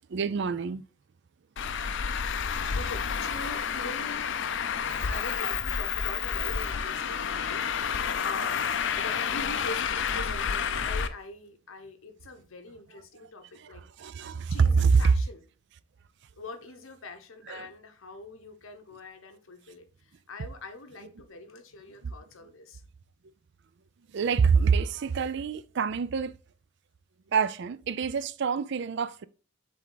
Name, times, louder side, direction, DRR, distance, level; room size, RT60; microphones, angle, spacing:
voice 1, 0.1-0.8 14.0-15.0 17.5-17.7 24.1-26.3 27.3-29.2, right 5 dB, 60° right, 0.4 m, -26 dB
Traffic noise roadway noise, 1.6-11.1, left 7 dB, 60° left, 0.5 m, -30 dB
voice 2, 2.2-4.3 4.8-8.7 8.9-13.8 14.5-15.4 16.4-22.8, left 2 dB, 85° left, 1.0 m, -43 dB
7.6 x 3.5 x 3.9 m
head